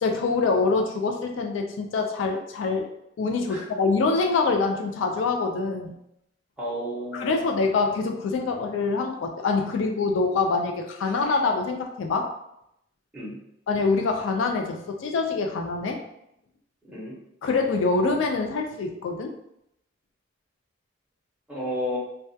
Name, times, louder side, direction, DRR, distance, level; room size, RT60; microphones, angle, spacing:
voice 1, 0.0-2.9 3.2-5.9 7.1-12.3 13.7-16.0 17.4-19.3, left 4 dB, 75° left, 3 dB, 0.3 m, -25 dB
voice 2, 6.6-7.4 13.1-13.4 16.8-17.1 21.5-22.0, equal, 5° right, -7 dB, 0.6 m, -32 dB
2.2 x 2.1 x 2.6 m, 0.79 s
head